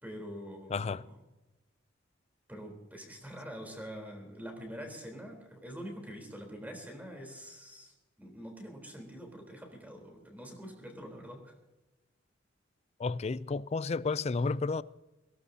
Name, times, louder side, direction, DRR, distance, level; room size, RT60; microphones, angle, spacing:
voice 1, 0.0-1.2 2.5-11.6, equal, 10° right, 3.7 m, -45 dB
voice 2, 0.7-1.0 13.0-14.8, left 4 dB, 35° left, 0.4 m, -31 dB
22.5 x 17.5 x 2.8 m
head